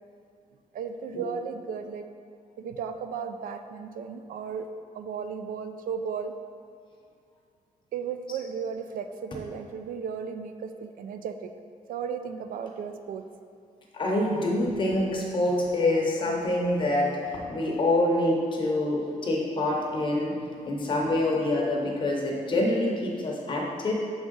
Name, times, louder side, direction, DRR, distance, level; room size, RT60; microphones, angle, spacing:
voice 1, 0.7-2.1 2.6-4.7 4.9-6.3 7.9-11.5 11.9-13.2 20.5-20.7 21.0-21.2, right 6 dB, 85° right, 7 dB, 0.4 m, -35 dB
voice 2, 13.9-20.4 20.6-23.9, left 1 dB, 35° left, -1 dB, 0.9 m, -26 dB
6.2 x 3.7 x 5.3 m, 2.3 s
wide cardioid pair, 175°, 14 cm